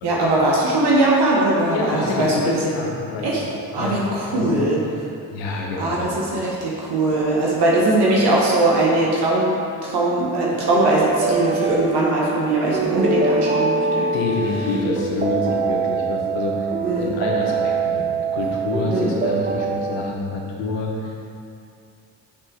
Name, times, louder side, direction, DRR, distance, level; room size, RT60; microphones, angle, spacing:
voice 1, 0.0-2.6 3.2-3.4 3.7-4.8 5.8-14.1 16.8-17.0 18.8-19.1, right 2 dB, 60° right, -4 dB, 1.2 m, -20 dB
voice 2, 1.7-3.4 3.8-4.7 5.3-6.1 14.1-16.7 17.0-18.1 18.3-21.2, left 3 dB, 75° left, -1 dB, 1.1 m, -27 dB
sound 1, 10.6-20.1, right 4 dB, 20° right, 0.6 m, -24 dB
6.3 x 4.1 x 3.9 m, 2.5 s
hypercardioid pair, 45°, 44 cm